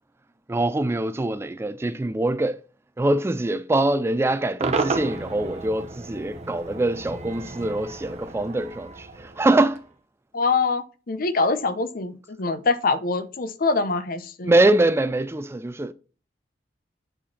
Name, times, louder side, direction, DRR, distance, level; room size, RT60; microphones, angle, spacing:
voice 1, 0.5-2.6 3.0-9.8 14.4-15.9, right 2 dB, 15° right, 0.3 m, -23 dB
Cheering / Crowd / Fireworks, 4.6-9.9, right 3 dB, 40° right, 1.0 m, -32 dB
voice 2, 10.3-14.5, left 3 dB, 50° left, 0.7 m, -24 dB
8.6 x 5.0 x 4.2 m
head